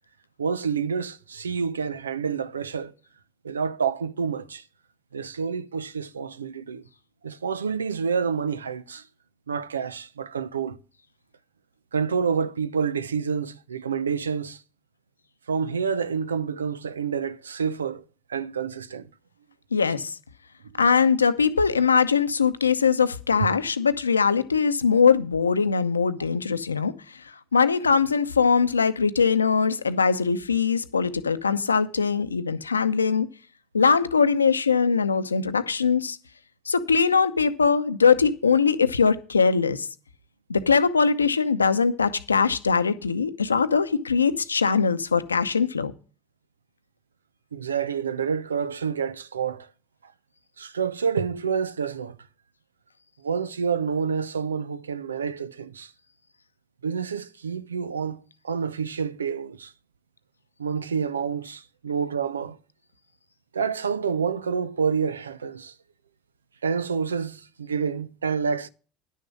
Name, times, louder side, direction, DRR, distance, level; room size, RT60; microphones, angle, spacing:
voice 1, 0.4-2.9 3.4-4.6 5.1-6.8 7.2-9.0 9.5-10.8 11.9-14.6 15.5-18.0 18.3-19.1 23.4-23.5 47.5-49.7 50.0-50.1 50.6-52.2 53.2-55.9 56.8-59.7 60.6-62.6 63.5-65.7 66.6-68.7, right 6 dB, 85° right, 0.6 m, -28 dB
voice 2, 19.7-20.2 20.8-26.9 27.5-33.3 33.7-36.2 36.7-39.9 40.5-45.9, left 5 dB, 90° left, 0.7 m, -21 dB
11.0 x 6.5 x 6.1 m
figure-of-eight pair, 70°, 0 cm